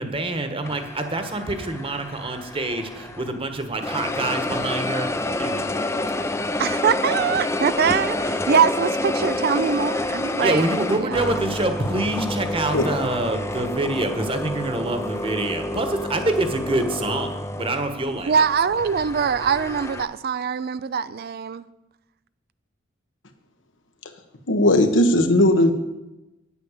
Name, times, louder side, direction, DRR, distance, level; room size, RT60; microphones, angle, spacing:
voice 1, 0.0-5.7 6.3-6.4 10.4-18.3, right 2 dB, 30° right, 7 dB, 1.2 m, -26 dB
sound 1, 0.6-3.4 3.8-20.0, left 1 dB, 15° left, 0.5 m, -28 dB
voice 2, 6.6-11.2 18.3-21.7, right 6 dB, 55° right, 15 dB, 0.4 m, -23 dB
voice 3, 24.5-25.7, left 1 dB, 80° left, 7 dB, 1.2 m, -17 dB
9.1 x 8.6 x 7.2 m, 0.99 s
head